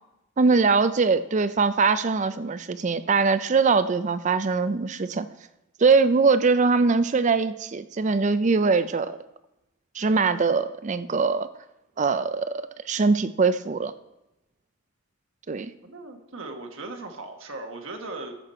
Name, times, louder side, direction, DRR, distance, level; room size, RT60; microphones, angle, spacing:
voice 1, 0.4-5.3 5.8-9.2 10.0-11.5 12.0-12.5 12.9-13.9 15.5-15.7, right 4 dB, 35° right, 13 dB, 0.4 m, -22 dB
voice 2, 15.8-18.3, right 2 dB, 65° right, 4 dB, 1.3 m, -38 dB
14.0 x 7.9 x 4.3 m, 0.93 s
head